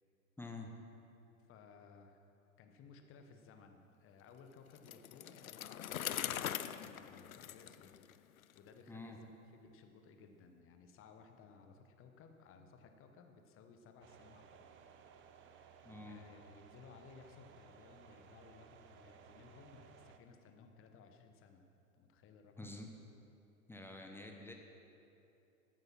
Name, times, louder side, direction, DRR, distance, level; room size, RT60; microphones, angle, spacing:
voice 1, 0.4-0.8 8.9-9.2 15.8-16.2 22.6-22.9 23.7-24.5, left 2 dB, 5° left, 2 dB, 1.1 m, -48 dB
voice 2, 1.5-2.3 2.6-14.7 15.4-21.6 22.0-22.7, left 5 dB, 30° left, 5 dB, 1.2 m, -60 dB
Bicycle, 4.7-8.6, left 10 dB, 75° left, 0.6 m, -42 dB
sound 1, 14.0-20.2, right 7 dB, 30° right, 0.8 m, -60 dB
14.5 x 9.2 x 5.8 m, 2.9 s
figure-of-eight pair, 90°, 42 cm